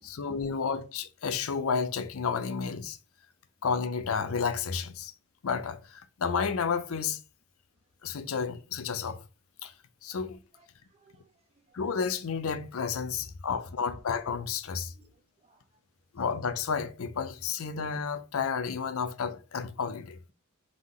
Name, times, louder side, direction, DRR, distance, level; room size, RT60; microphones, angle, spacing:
voice 1, 0.0-3.0 3.6-5.1 5.4-7.2 8.0-9.2 9.6-9.7 10.0-10.4 11.7-14.9 16.1-20.2, left 6 dB, 75° left, 0.5 m, -31 dB
voice 2, 10.5-11.8 14.9-15.6, right 3 dB, 30° right, 0.6 m, -65 dB
3.8 x 3.7 x 3.1 m
head